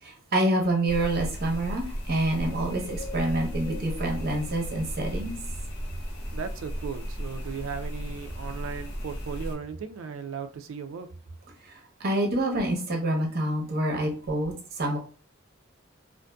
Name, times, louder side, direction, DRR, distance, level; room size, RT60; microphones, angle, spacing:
voice 1, 0.0-5.4 11.7-15.0, right 1 dB, 50° right, 0.8 m, -27 dB
sound 1, 0.9-9.5, equal, 60° left, 0.7 m, -35 dB
voice 2, 6.3-11.1, right 6 dB, 75° right, 0.3 m, -36 dB
2.5 x 2.5 x 2.2 m
head